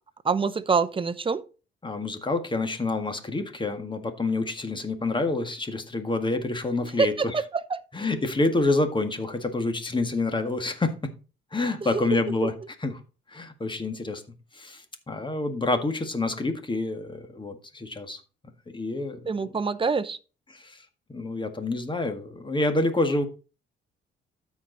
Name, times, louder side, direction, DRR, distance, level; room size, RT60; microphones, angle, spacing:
voice 1, 0.2-1.4 6.8-7.8 11.8-12.0 12.4-12.5 19.3-20.2, right 5 dB, 25° right, 0.8 m, -26 dB
voice 2, 1.8-7.1 7.9-11.0 11.5-12.5 12.8-12.9 13.3-14.2 14.5-18.2 18.7-19.2 20.5-20.8 21.1-23.2, left 2 dB, 25° left, 1.8 m, -27 dB
13.0 x 4.9 x 4.0 m
cardioid pair, 90°, 20 cm